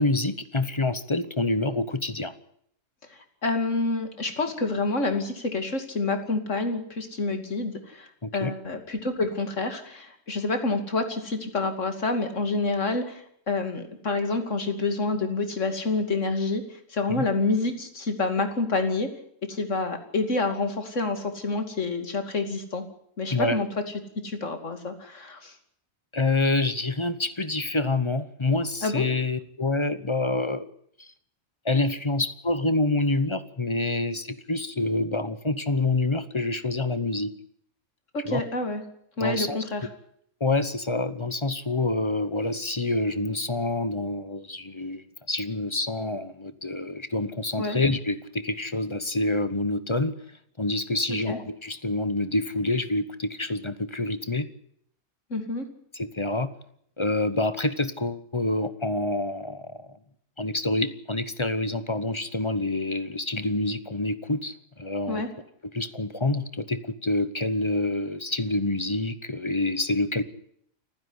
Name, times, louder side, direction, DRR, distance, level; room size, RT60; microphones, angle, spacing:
voice 1, 0.0-2.3 8.2-8.5 17.1-17.3 23.3-23.6 26.1-30.7 31.0-31.1 31.6-37.3 38.2-38.4 39.2-39.6 40.4-50.1 50.6-54.5 55.9-56.5 57.0-60.0 60.4-65.2 65.7-70.2, left 2 dB, 25° left, 13 dB, 0.9 m, -27 dB
voice 2, 3.4-8.1 8.3-16.6 16.9-19.1 19.5-22.8 23.2-23.7 24.2-25.5 28.8-29.0 38.1-38.8 39.2-39.9 47.6-47.8 51.3-51.4 55.3-55.7 65.1-65.3, left 3 dB, 60° left, 7 dB, 2.9 m, -28 dB
28.5 x 10.5 x 9.8 m, 0.69 s
omnidirectional pair, 1.5 m